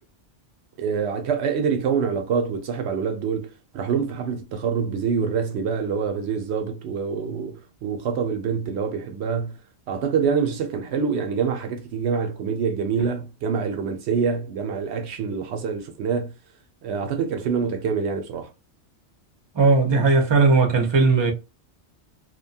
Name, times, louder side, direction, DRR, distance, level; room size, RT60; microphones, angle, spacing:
voice 1, 0.8-9.6 9.9-16.3 16.8-18.5, right 6 dB, 70° right, 0.8 m, -26 dB
voice 2, 19.5-21.3, right 4 dB, 30° right, 0.6 m, -17 dB
2.8 x 2.2 x 2.6 m
omnidirectional pair, 1.2 m